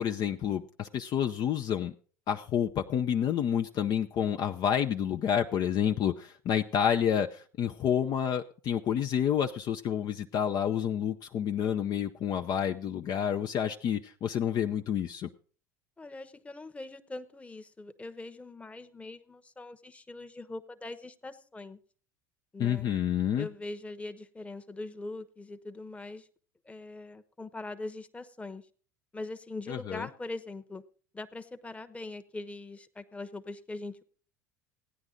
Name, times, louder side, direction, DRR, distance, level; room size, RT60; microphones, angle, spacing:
voice 1, 0.0-1.9 2.3-15.3 22.6-23.5 29.7-30.1, left 9 dB, 45° left, 5 dB, 0.6 m, -29 dB
voice 2, 16.0-21.8 22.5-22.9 23.4-26.3 26.7-28.6 29.1-30.8 31.1-34.0, left 2 dB, 15° left, 8 dB, 1.0 m, -42 dB
15.5 x 9.8 x 3.8 m, 0.41 s
hypercardioid pair, 80°, 10 cm